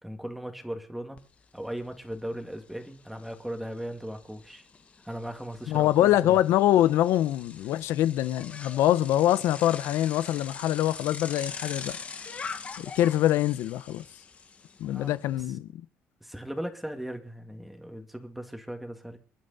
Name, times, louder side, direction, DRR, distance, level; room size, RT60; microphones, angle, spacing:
voice 1, 0.0-1.2 1.5-4.7 5.0-6.4 14.8-15.4 16.2-19.2, right 1 dB, ahead, 2.0 m, -38 dB
Bicycle, 1.2-1.3 1.6-15.4, left 5 dB, 30° left, 1.4 m, -43 dB
voice 2, 5.7-12.0 12.8-14.0 14.8-15.7, left 13 dB, 85° left, 0.8 m, -24 dB
27.0 x 11.5 x 4.1 m
cardioid pair, 145°, 5 cm